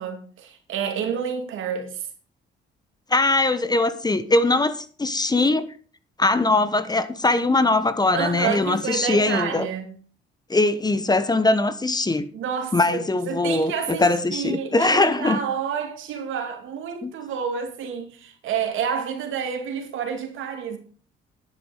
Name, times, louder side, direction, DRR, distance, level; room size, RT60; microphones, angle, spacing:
voice 1, 0.0-2.1 8.1-10.0 12.3-20.8, right 7 dB, 80° right, 2.5 m, -29 dB
voice 2, 3.1-5.7 6.2-9.7 10.5-12.3 12.7-15.4 17.0-17.1, left 2 dB, 20° left, 1.1 m, -21 dB
10.5 x 9.8 x 5.1 m
cardioid pair, 90°, 20 cm